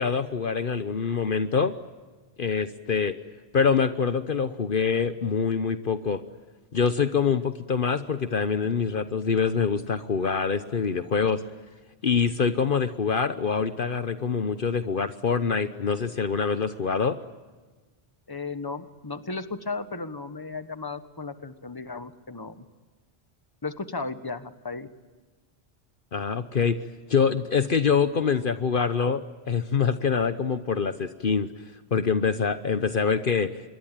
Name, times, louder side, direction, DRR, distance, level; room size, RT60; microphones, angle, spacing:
voice 1, 0.0-1.7 2.4-3.1 3.5-6.2 6.7-11.4 12.0-17.2 26.1-26.8 27.1-31.5 31.9-33.6, left 6 dB, 55° left, 11 dB, 1.1 m, -25 dB
voice 2, 18.3-22.6 23.6-24.9, left 3 dB, 20° left, 11 dB, 1.3 m, -35 dB
26.5 x 22.0 x 9.1 m, 1.3 s
omnidirectional pair, 1.1 m